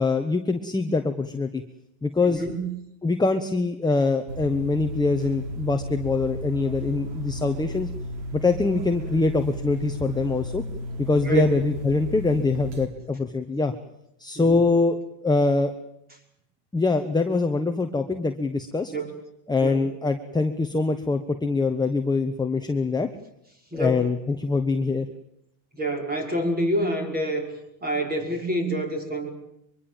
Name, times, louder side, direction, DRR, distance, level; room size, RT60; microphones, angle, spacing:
voice 1, 0.0-1.6 2.0-2.4 3.0-7.9 8.3-10.6 11.0-13.7 14.2-15.7 16.7-18.9 19.5-23.1 23.7-25.1, left 3 dB, 10° left, 6 dB, 1.3 m, -24 dB
voice 2, 2.2-2.7 11.2-11.5 14.3-14.6 18.9-19.2 19.6-19.8 23.7-24.0 25.7-27.5 27.8-29.3, right 1 dB, 20° right, 3 dB, 5.9 m, -27 dB
sound 1, 4.3-12.9, equal, 90° right, 3.7 m, -34 dB
23.5 x 23.5 x 7.4 m, 0.79 s
supercardioid pair, 115°, 50 cm